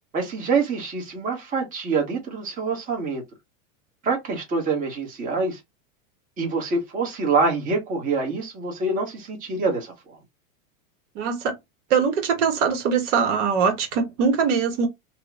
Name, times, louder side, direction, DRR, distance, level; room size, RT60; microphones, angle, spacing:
voice 1, 0.1-3.2 4.0-5.6 6.4-10.2, right 4 dB, 20° right, 1.1 m, -25 dB
voice 2, 11.1-11.5 11.9-14.9, right 6 dB, 65° right, 1.1 m, -22 dB
2.9 x 2.1 x 3.6 m
supercardioid pair, 140°, 39 cm